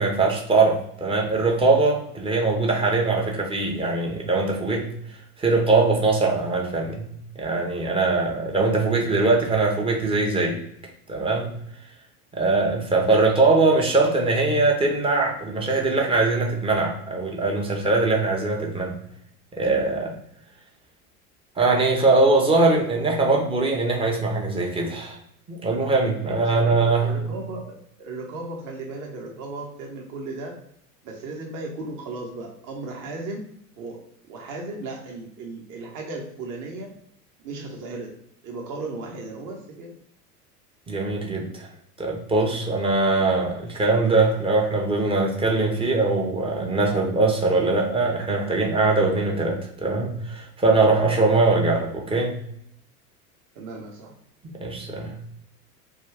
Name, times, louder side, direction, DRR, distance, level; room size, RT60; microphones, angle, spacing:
voice 1, 0.0-4.9 5.4-7.1 7.4-10.6 11.1-11.5 12.3-19.0 19.6-20.1 21.6-25.2 25.5-27.1 40.9-41.7 42.0-52.4 54.6-55.1, right 3 dB, 15° right, 0 dB, 0.5 m, -21 dB
voice 2, 26.2-30.6 31.0-33.4 33.8-34.0 34.3-36.9 37.4-38.1 38.4-39.9 53.6-54.1, right 2 dB, 40° right, 0 dB, 0.8 m, -35 dB
2.3 x 2.3 x 3.2 m, 0.73 s
hypercardioid pair, 85°, 46 cm